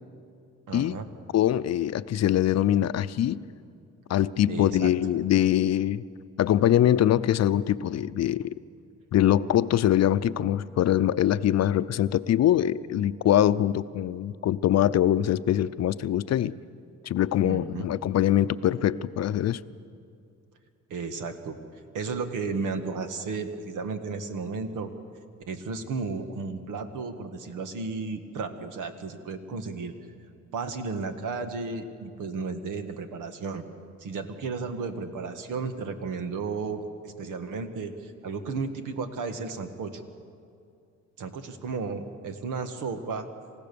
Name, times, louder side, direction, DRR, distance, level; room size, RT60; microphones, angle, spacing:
voice 1, 0.7-1.1 4.5-4.9 17.4-17.9 20.9-21.6 21.9-24.9 25.5-29.9 30.5-33.6 34.0-40.0 41.2-43.3, right 4 dB, 85° right, 8 dB, 1.7 m, -33 dB
voice 2, 1.3-3.4 4.1-6.0 6.4-8.5 9.1-16.5 17.0-19.6, left 11 dB, 60° left, 14 dB, 0.6 m, -23 dB
27.5 x 15.5 x 6.9 m, 2.4 s
cardioid pair, 90°, 30 cm